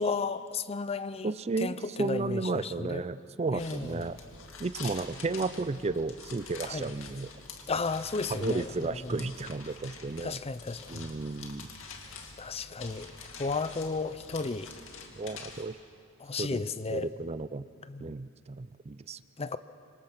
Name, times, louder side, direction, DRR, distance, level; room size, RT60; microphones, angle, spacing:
voice 1, 0.0-1.3 1.6-3.0 3.5-4.1 6.7-6.9 7.7-9.1 10.2-11.1 12.4-13.1 13.4-14.7 16.2-17.1 17.9-18.2 19.4-19.6, left 4 dB, 30° left, 14 dB, 0.6 m, -33 dB
voice 2, 1.2-4.2 4.6-7.3 8.3-10.4 10.9-11.7 15.2-15.8 16.4-16.6 16.9-17.7 18.0-19.2, right 3 dB, 30° right, 14 dB, 0.5 m, -33 dB
sound 1, 3.6-15.6, left 4 dB, 70° left, 2.3 m, -46 dB
26.0 x 25.5 x 6.0 m, 2.3 s
head